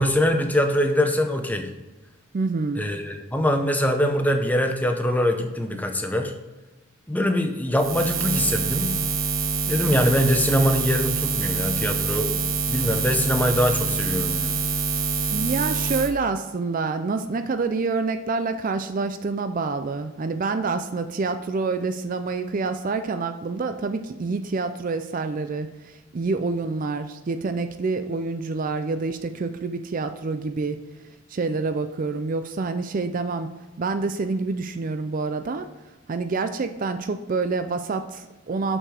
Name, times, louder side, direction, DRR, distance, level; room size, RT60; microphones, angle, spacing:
voice 1, 0.0-1.7 2.8-6.3 7.1-8.9 9.7-12.4 12.7-14.5, equal, 5° left, 5 dB, 0.6 m, -23 dB
voice 2, 2.3-2.8 15.3-30.8 31.3-33.5 33.8-35.7 36.1-38.8, right 4 dB, 40° right, 9 dB, 0.4 m, -27 dB
Buzz, 7.8-16.1, right 4 dB, 65° right, 0.9 m, -25 dB
6.6 x 6.3 x 4.7 m, 1.1 s
head